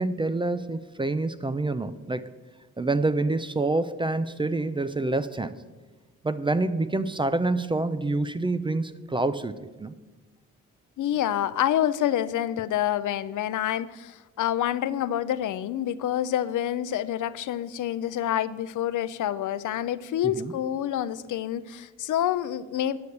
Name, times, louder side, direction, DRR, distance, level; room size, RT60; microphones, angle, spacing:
voice 1, 0.0-2.3 2.8-5.6 6.2-9.9 20.4-20.5, right 2 dB, 15° right, 13 dB, 0.4 m, -27 dB
voice 2, 11.0-23.0, left 11 dB, 75° left, 15 dB, 0.5 m, -27 dB
9.7 x 6.5 x 6.9 m, 1.2 s
cardioid pair, 110°, 31 cm